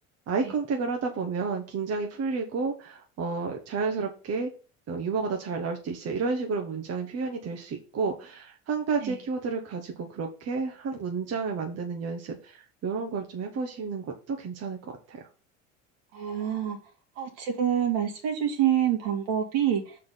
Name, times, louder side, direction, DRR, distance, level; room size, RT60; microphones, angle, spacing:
voice 1, 0.3-4.5 4.9-15.3, right 4 dB, 40° right, 3 dB, 1.4 m, -31 dB
voice 2, 16.1-16.8 17.2-20.0, right 10 dB, 65° right, 3 dB, 2.5 m, -27 dB
6.2 x 4.4 x 5.5 m, 0.36 s
hypercardioid pair, 70°, 39 cm